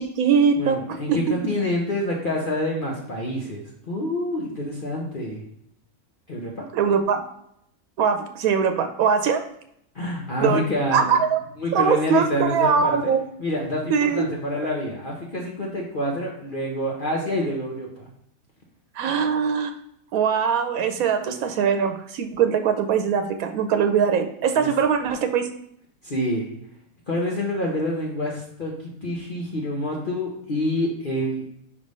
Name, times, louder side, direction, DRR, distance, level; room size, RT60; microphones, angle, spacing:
voice 1, 0.0-1.2 6.7-7.2 8.0-9.4 10.4-10.6 10.9-11.4 11.7-13.2 13.9-14.2 19.0-19.7 20.1-25.5, right 6 dB, 85° right, 7 dB, 1.1 m, -21 dB
voice 2, 0.5-5.4 6.3-6.6 9.9-11.2 11.6-13.1 13.4-18.1 24.5-24.7 26.0-26.5 27.1-31.4, left 1 dB, 40° left, -2 dB, 1.0 m, -27 dB
5.3 x 3.3 x 5.3 m, 0.73 s
omnidirectional pair, 1.5 m